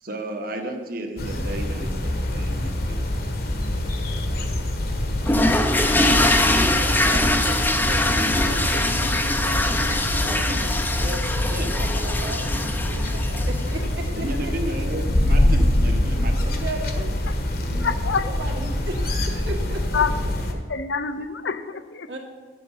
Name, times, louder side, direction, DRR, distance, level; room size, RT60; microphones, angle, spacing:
voice 1, 0.0-2.8 11.5-11.7 14.2-16.5 17.6-17.9, right 1 dB, 50° right, 4 dB, 1.2 m, -32 dB
sound 1, 1.2-20.5, left 1 dB, 55° left, 1.3 m, -25 dB
sound 2, 5.3-13.7, left 1 dB, 10° left, 0.6 m, -23 dB
voice 2, 6.8-14.2 14.4-14.5 16.4-17.2 17.8-20.0 22.1-22.2, right 2 dB, 70° right, 0 dB, 2.1 m, -36 dB
voice 3, 17.8-18.3 19.9-20.1 20.5-22.1, left 6 dB, 70° left, 10 dB, 0.7 m, -26 dB
10.5 x 7.7 x 5.6 m, 1.5 s
head